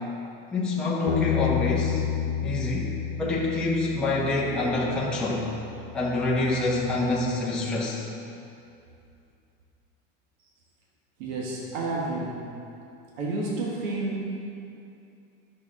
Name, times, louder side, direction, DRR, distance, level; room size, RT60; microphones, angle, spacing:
voice 1, 0.5-2.0 2.4-2.9 3.2-5.5 5.9-8.0, left 2 dB, 5° left, -6 dB, 0.7 m, -26 dB
Bass guitar, 1.1-7.3, left 9 dB, 75° left, 0.5 m, -32 dB
voice 2, 11.2-12.5 13.2-14.4, right 2 dB, 55° right, -3 dB, 1.4 m, -30 dB
11.5 x 6.6 x 3.7 m, 2.6 s
cardioid pair, 180°, 30 cm